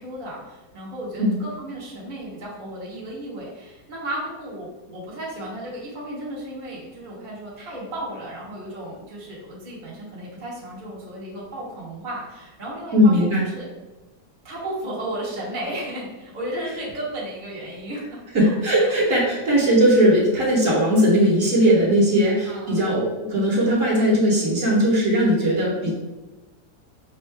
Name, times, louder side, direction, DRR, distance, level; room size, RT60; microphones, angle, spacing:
voice 1, 0.0-13.7 14.4-18.9 19.2-19.3 22.5-22.9, right 1 dB, 35° right, -6 dB, 1.0 m, -34 dB
voice 2, 12.9-13.4 18.3-25.9, equal, 50° right, -5 dB, 1.4 m, -19 dB
5.4 x 2.5 x 3.2 m, 1.1 s
omnidirectional pair, 1.9 m